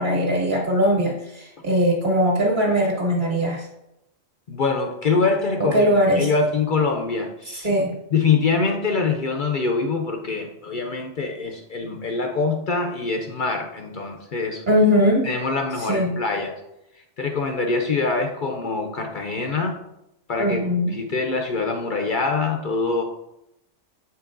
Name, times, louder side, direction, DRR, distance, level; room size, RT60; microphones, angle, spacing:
voice 1, 0.0-3.7 5.6-6.3 7.5-7.9 14.7-15.3 15.8-16.1 20.4-21.0, equal, 40° right, -3 dB, 1.9 m, -20 dB
voice 2, 4.5-7.7 8.1-14.6 15.2-16.6 17.2-19.8 20.3-23.0, left 4 dB, 55° left, 3 dB, 0.6 m, -24 dB
7.3 x 5.4 x 2.6 m, 0.87 s
omnidirectional pair, 1.3 m